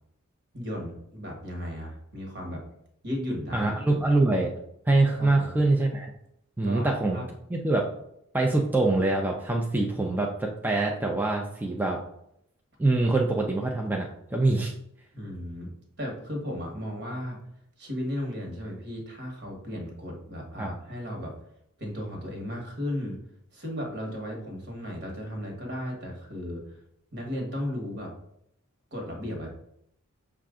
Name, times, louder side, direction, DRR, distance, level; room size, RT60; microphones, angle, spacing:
voice 1, 0.5-2.6 3.0-4.0 5.2-5.5 6.6-7.3 15.1-15.7 16.0-17.4 17.8-21.3 21.8-23.2 23.5-26.8 27.1-28.1 28.9-29.5, equal, 50° right, 1 dB, 1.3 m, -35 dB
voice 2, 3.5-4.5 4.9-6.1 6.6-7.2 7.5-7.8 8.3-12.0 12.8-14.7 20.6-20.7, right 2 dB, 10° right, -1 dB, 0.4 m, -24 dB
5.7 x 2.4 x 3.6 m, 0.74 s
head